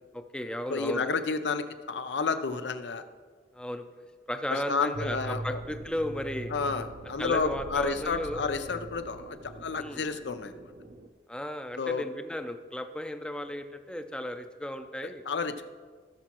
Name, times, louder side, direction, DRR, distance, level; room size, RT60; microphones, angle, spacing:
voice 1, 0.1-1.1 3.5-3.8 4.3-6.5 7.2-8.4 9.8-10.0 11.3-15.2, left 1 dB, 5° left, 7 dB, 0.5 m, -35 dB
voice 2, 0.7-3.0 4.5-5.6 6.5-10.6 11.8-12.1 15.0-15.7, left 4 dB, 90° left, 10 dB, 0.6 m, -31 dB
sound 1, 4.9-11.1, right 2 dB, 55° right, 0.7 m, -42 dB
17.0 x 7.1 x 3.0 m, 1.5 s
head